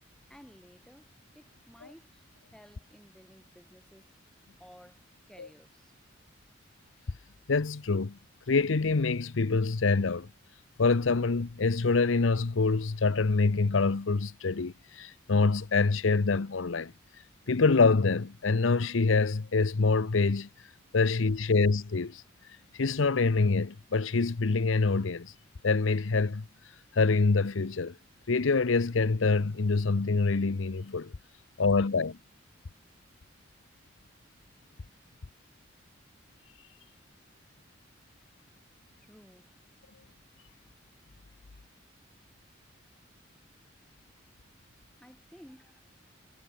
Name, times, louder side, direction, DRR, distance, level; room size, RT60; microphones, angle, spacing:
voice 1, 0.3-2.2 2.5-4.1 4.6-6.0 39.0-39.5 45.0-45.8, equal, 5° left, 7.5 m, -55 dB
voice 2, 7.5-8.2 8.5-10.3 10.8-16.9 17.5-20.5 20.9-22.2 22.7-25.3 25.6-26.4 26.9-27.9 28.3-31.1 31.6-32.2, left 4 dB, 80° left, 0.7 m, -25 dB
head